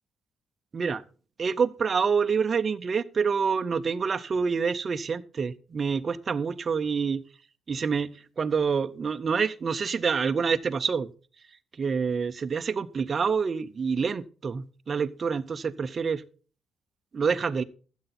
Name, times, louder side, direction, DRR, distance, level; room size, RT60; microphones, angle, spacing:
voice 1, 1.4-7.2 7.7-8.1 8.4-11.1 11.8-16.2 17.1-17.6, right 5 dB, 35° right, 13 dB, 0.6 m, -27 dB
13.0 x 7.8 x 4.2 m, 0.39 s
cardioid pair, 150°, 0 cm